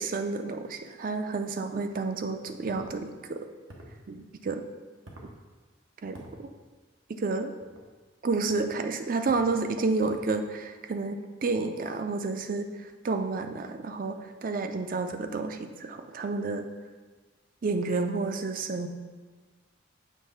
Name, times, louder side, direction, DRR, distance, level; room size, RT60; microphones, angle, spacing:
voice 1, 0.0-3.5 4.1-4.6 6.0-6.5 7.1-7.5 8.2-16.6 17.6-18.9, right 3 dB, 45° right, 7 dB, 0.4 m, -30 dB
sound 1, 2.7-2.9 3.7-4.0 5.0-5.3 6.1-6.4 7.6-7.9 8.5-8.7 9.3-9.6 10.0-10.3, right 1 dB, 90° right, 1.1 m, -48 dB
7.3 x 3.2 x 5.5 m, 1.4 s
head